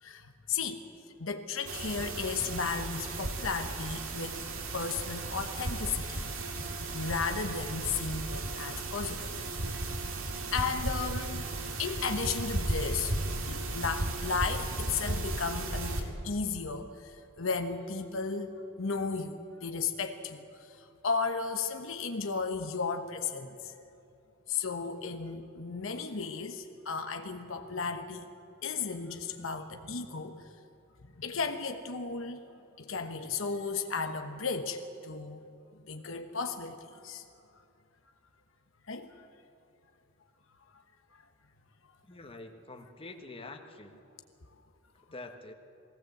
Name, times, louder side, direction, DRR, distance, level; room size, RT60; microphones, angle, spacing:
voice 1, 0.0-0.8 1.2-4.4 4.7-6.3 6.9-9.3 10.5-11.4 11.8-13.1 13.5-23.7 24.5-28.3 28.6-30.5 31.2-32.4 32.8-35.4 35.7-37.2 38.9-39.3, left 5 dB, 70° left, 7 dB, 1.2 m, -34 dB
sound 1, 1.7-16.0, right 2 dB, 75° right, 2.2 m, -35 dB
voice 2, 42.1-43.9 45.1-45.5, left 2 dB, 25° left, 4 dB, 1.4 m, -46 dB
20.5 x 17.5 x 7.8 m, 2.6 s
head